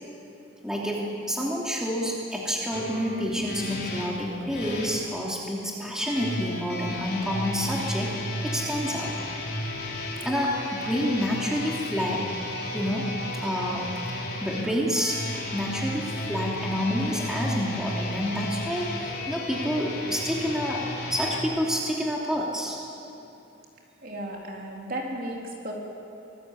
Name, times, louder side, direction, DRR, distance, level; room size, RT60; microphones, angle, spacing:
voice 1, 0.6-9.2 10.2-12.3 12.7-13.9 14.4-15.2 15.5-22.8, equal, 5° right, -3 dB, 2.9 m, -28 dB
sound 1, 2.7-4.9 6.0-21.4, left 1 dB, 55° left, 5.0 m, -33 dB
voice 2, 24.0-25.4 25.6-25.7, right 1 dB, 50° right, -1 dB, 3.9 m, -34 dB
24.5 x 19.5 x 8.6 m, 2.8 s
head